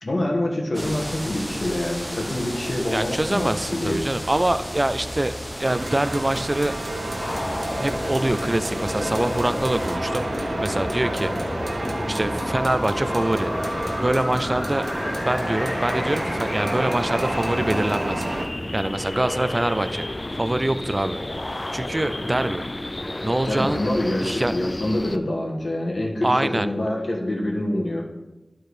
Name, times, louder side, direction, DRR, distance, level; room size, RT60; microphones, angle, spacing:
voice 1, 0.0-4.0 23.5-28.1, left 1 dB, 65° left, -1 dB, 1.7 m, -26 dB
sound 1, 0.7-10.0, equal, ahead, 0.8 m, -34 dB
voice 2, 2.9-5.3 5.6-6.8 7.8-11.5 12.1-13.5 14.0-14.9 15.1-18.2 18.7-20.1 20.3-21.2 21.7-22.6 23.2-23.8 24.2-24.5 26.2-26.7, right 1 dB, 30° right, 11 dB, 0.4 m, -24 dB
sound 2, 5.6-18.5, right 1 dB, 85° right, 1.2 m, -30 dB
sound 3, 7.2-25.2, left 1 dB, 35° left, 0.5 m, -31 dB
11.5 x 4.5 x 4.9 m, 1.0 s
wide cardioid pair, 70°, 0 cm